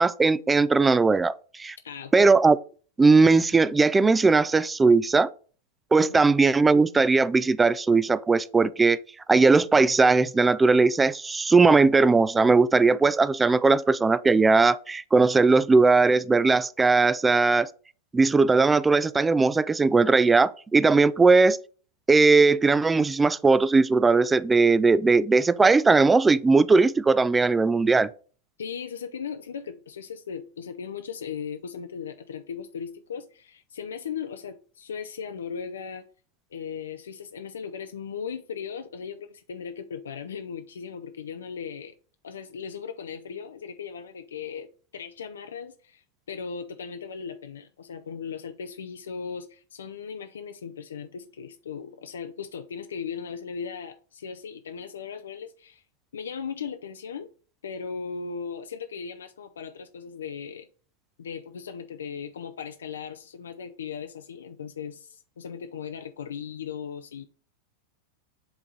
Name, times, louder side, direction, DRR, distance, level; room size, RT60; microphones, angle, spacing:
voice 1, 0.0-1.8 2.1-2.6 3.0-5.3 5.9-9.0 9.3-17.7 18.1-21.6 22.1-28.1, right 4 dB, 10° right, 0.3 m, -19 dB
voice 2, 1.8-2.3 6.1-6.3 28.6-36.1 36.5-41.9 42.2-55.8 56.1-57.3 57.6-60.7 61.2-67.3, left 6 dB, 65° left, 0.5 m, -37 dB
7.8 x 3.6 x 3.9 m
figure-of-eight pair, 90°, 0 cm